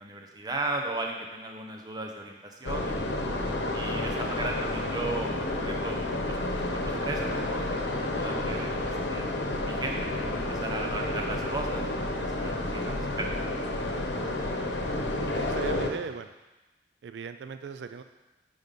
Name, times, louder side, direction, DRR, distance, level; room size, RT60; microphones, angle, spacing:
voice 1, 0.0-3.1 3.7-9.2 9.7-13.5, right 2 dB, 25° right, 1 dB, 0.8 m, -36 dB
sound 1, 2.6-15.9, left 1 dB, 90° left, 0.9 m, -30 dB
voice 2, 15.3-16.3 17.0-18.0, right 6 dB, 80° right, 9 dB, 0.3 m, -38 dB
9.4 x 3.9 x 5.3 m, 1.1 s
head